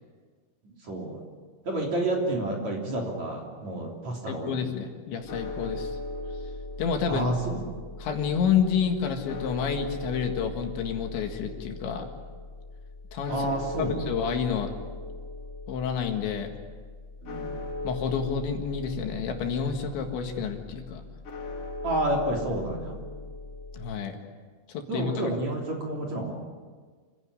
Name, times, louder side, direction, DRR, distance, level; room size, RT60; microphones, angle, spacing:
voice 1, 0.6-1.2 1.7-4.6 7.1-7.7 13.3-14.0 17.2-17.5 21.8-23.0 24.9-26.4, right 1 dB, 40° right, -1 dB, 4.0 m, -30 dB
voice 2, 4.3-6.0 6.8-7.3 8.0-12.1 13.1-13.5 13.8-14.7 15.7-16.5 17.8-21.0 23.7-24.2 24.7-25.4, left 7 dB, 70° left, 4 dB, 3.9 m, -29 dB
sound 1, 5.2-24.0, left 2 dB, 45° left, 2.2 m, -38 dB
27.0 x 16.5 x 9.9 m, 1.5 s
omnidirectional pair, 5.6 m